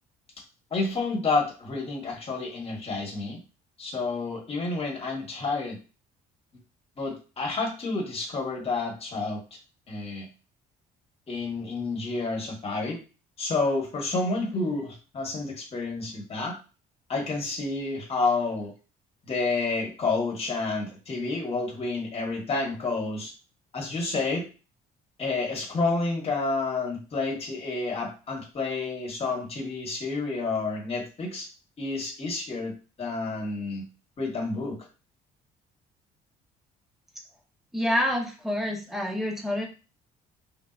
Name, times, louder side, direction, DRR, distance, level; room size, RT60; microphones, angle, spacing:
voice 1, 0.7-3.4 3.8-5.8 7.0-9.4 9.9-10.3 11.3-13.0 13.4-16.5 17.1-18.7 19.2-23.3 23.7-24.4 25.2-31.5 31.8-33.8 34.2-34.8, left 3 dB, 35° left, -1 dB, 1.4 m, -29 dB
voice 2, 37.7-39.7, equal, ahead, 0 dB, 0.9 m, -27 dB
3.5 x 2.7 x 2.4 m, 0.33 s
cardioid pair, 110°, 17 cm